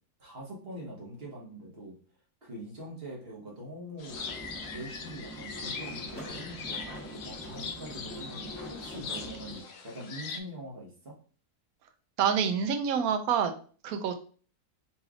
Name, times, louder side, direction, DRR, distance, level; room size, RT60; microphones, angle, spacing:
voice 1, 0.2-2.0 2.4-4.2 4.7-11.2, equal, 40° right, -3 dB, 1.3 m, -43 dB
sound 1, 4.0-10.4, left 5 dB, 85° left, 0.5 m, -41 dB
sound 2, 4.1-9.6, equal, 10° left, 0.9 m, -44 dB
voice 2, 12.2-13.5 13.8-14.2, right 7 dB, 70° right, 7 dB, 1.0 m, -27 dB
4.0 x 3.2 x 2.4 m, 0.41 s
omnidirectional pair, 1.6 m